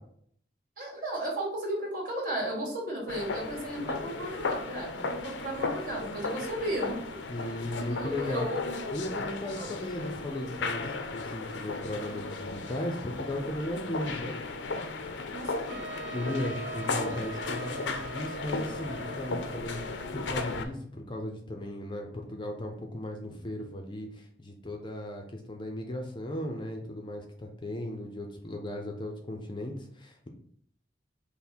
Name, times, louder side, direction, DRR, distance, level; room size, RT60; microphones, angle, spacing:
voice 1, 0.8-6.9 7.9-8.7 9.4-9.7 15.3-15.9, right 1 dB, 50° right, -3 dB, 1.9 m, -34 dB
sound 1, 3.1-20.6, left 3 dB, 80° left, 0.5 m, -36 dB
voice 2, 7.3-8.5 8.9-14.3 16.1-30.3, left 1 dB, 25° left, 3 dB, 0.5 m, -36 dB
Trumpet, 15.7-20.5, right 3 dB, 80° right, 0.6 m, -43 dB
5.7 x 2.1 x 4.3 m, 0.64 s
head